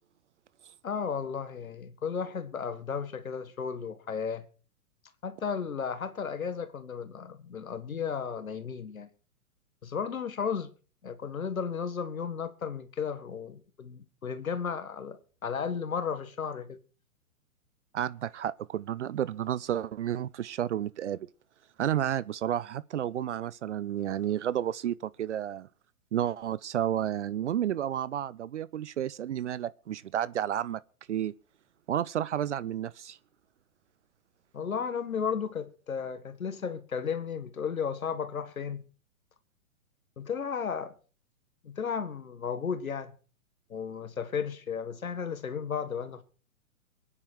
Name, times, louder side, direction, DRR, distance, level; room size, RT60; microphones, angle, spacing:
voice 1, 0.8-4.4 5.2-9.1 9.8-10.7 11.0-16.8 34.5-38.8 40.2-40.9 41.6-43.1 43.7-46.2, left 6 dB, 70° left, 1.7 m, -34 dB
voice 2, 17.9-21.3 21.8-25.7 26.1-30.8 31.1-31.3 31.9-33.2, right 10 dB, 55° right, 0.7 m, -31 dB
23.5 x 9.8 x 4.5 m
figure-of-eight pair, 120°, 43 cm